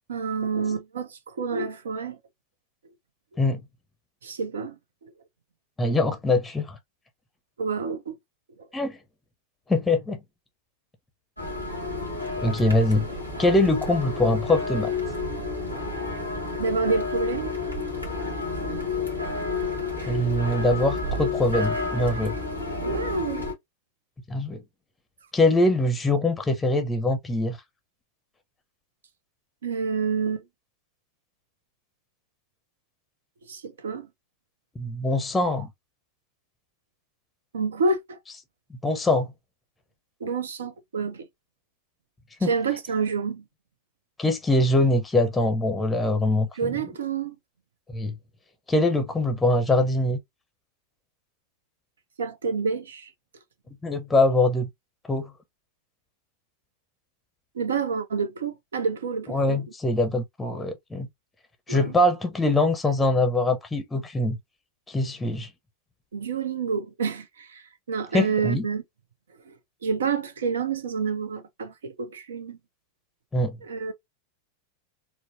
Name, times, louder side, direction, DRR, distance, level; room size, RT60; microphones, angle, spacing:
voice 1, 0.1-2.2 4.2-5.1 5.8-6.0 7.6-8.2 8.6-8.7 12.5-12.6 16.6-17.5 22.8-23.5 29.6-30.4 33.5-34.1 37.5-38.2 40.2-41.3 42.5-43.4 46.5-47.4 52.2-53.1 57.5-59.6 61.7-61.9 66.1-68.8 69.5-69.6 69.8-72.6 73.6-73.9, right 5 dB, 65° right, 0.7 m, -28 dB
voice 2, 5.8-6.8 8.7-9.0 9.7-10.2 12.4-13.1 13.4-14.9 20.0-22.4 24.3-24.6 25.3-27.6 34.8-35.7 38.8-39.3 42.4-42.5 44.2-46.7 47.9-48.1 48.7-50.2 53.8-54.7 55.1-55.3 59.3-61.1 61.7-64.4 64.9-65.5 68.1-68.7 73.3-73.6, left 2 dB, 10° left, 0.7 m, -23 dB
sound 1, 11.4-23.5, left 3 dB, 85° right, 1.2 m, -30 dB
4.0 x 2.1 x 2.6 m
figure-of-eight pair, 90°, 0 cm